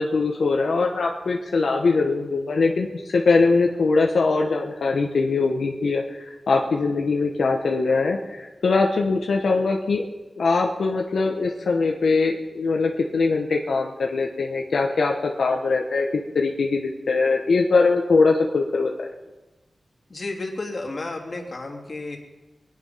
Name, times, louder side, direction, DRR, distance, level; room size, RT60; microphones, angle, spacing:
voice 1, 0.0-2.9 3.1-6.0 6.5-10.0 10.4-18.9, left 4 dB, 90° left, 1 dB, 1.2 m, -22 dB
voice 2, 20.1-22.2, left 2 dB, 50° left, 0 dB, 2.9 m, -32 dB
21.5 x 9.9 x 5.7 m, 1.1 s
wide cardioid pair, 85°, 0 cm